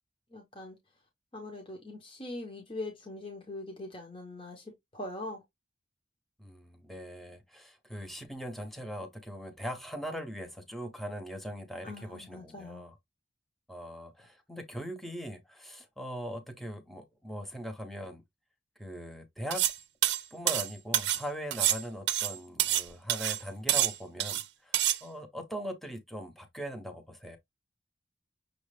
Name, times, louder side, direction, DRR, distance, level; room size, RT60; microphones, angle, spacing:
voice 1, 0.3-0.8 1.3-5.4 11.8-12.8, left 2 dB, 30° left, 0.9 m, -42 dB
voice 2, 6.4-13.0 13.7-18.2 18.8-19.6 20.3-27.4, equal, ahead, 0.7 m, -40 dB
sound 1, 19.5-19.8 20.0-21.2 21.5-22.8 23.1-23.4 23.7-24.4 24.7-25.0, right 13 dB, 70° right, 0.5 m, -27 dB
6.3 x 2.3 x 3.2 m
head